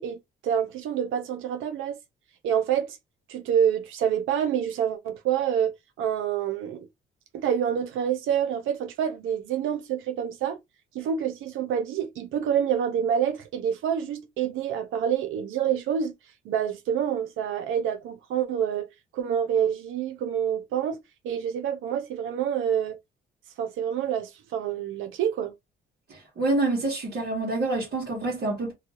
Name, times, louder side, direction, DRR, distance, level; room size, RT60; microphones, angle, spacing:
voice 1, 0.0-2.0 2.4-3.0 3.3-6.9 7.3-10.6 10.9-16.1 16.4-18.9 19.1-21.0 21.2-23.0 23.6-25.5, right 9 dB, 90° right, 0.8 m, -27 dB
voice 2, 26.1-28.7, right 2 dB, 55° right, 1.3 m, -27 dB
2.7 x 2.4 x 2.9 m
cardioid pair, 90°, 20 cm